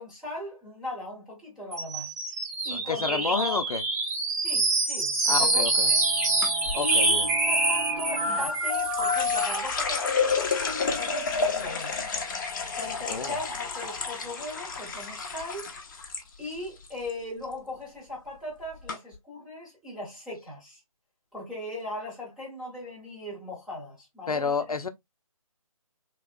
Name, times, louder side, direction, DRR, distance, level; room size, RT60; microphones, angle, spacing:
voice 1, 0.0-2.1 2.6-3.6 4.4-6.0 6.7-12.2 12.7-15.7 16.4-20.8 21.3-24.6, left 2 dB, 5° right, 1.1 m, -38 dB
sound 1, 1.7-9.7, right 2 dB, 25° right, 1.0 m, -26 dB
voice 2, 2.7-3.8 5.3-5.9 6.7-7.3 13.1-13.3 24.3-24.9, left 4 dB, 85° left, 0.6 m, -29 dB
sound 2, 5.3-9.7, right 5 dB, 80° right, 0.7 m, -39 dB
sound 3, 6.4-6.8 8.3-16.2 16.5-17.1 17.4-17.8 18.4-18.5 18.9-19.0, left 4 dB, 35° left, 0.8 m, -31 dB
3.0 x 2.9 x 2.4 m
figure-of-eight pair, 150°, 18 cm